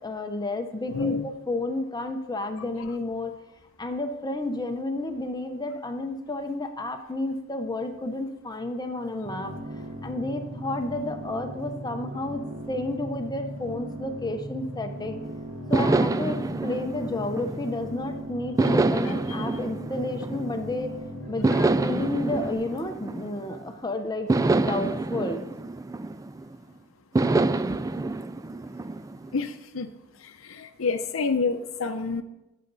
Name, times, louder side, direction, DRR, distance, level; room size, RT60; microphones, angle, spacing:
voice 1, 0.0-3.3 3.8-9.6 10.0-15.2 15.7-20.9 21.3-25.4, left 2 dB, 20° left, 6 dB, 0.7 m, -31 dB
voice 2, 0.9-1.3 29.3-29.9 30.4-32.2, left 4 dB, 70° left, 6 dB, 0.7 m, -28 dB
sound 1, 9.2-22.5, right 1 dB, 55° right, 1.6 m, -38 dB
sound 2, 15.7-18.0 18.6-20.8 21.4-23.7 24.3-26.6 27.2-29.4, right 3 dB, 15° right, 0.3 m, -26 dB
16.0 x 6.7 x 4.0 m, 0.94 s
head